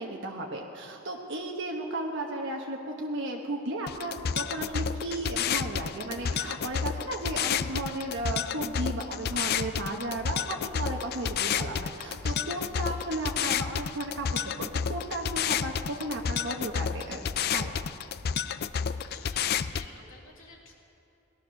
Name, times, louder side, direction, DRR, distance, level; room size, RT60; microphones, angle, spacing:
voice 1, 0.0-17.2 17.5-17.7, right 1 dB, 65° right, 0 dB, 1.1 m, -34 dB
sound 1, 3.9-19.9, left 7 dB, 50° left, 0.4 m, -31 dB
voice 2, 12.5-13.0 19.0-20.7, left 3 dB, 85° left, -2 dB, 2.8 m, -51 dB
18.5 x 11.5 x 6.4 m, 2.8 s
head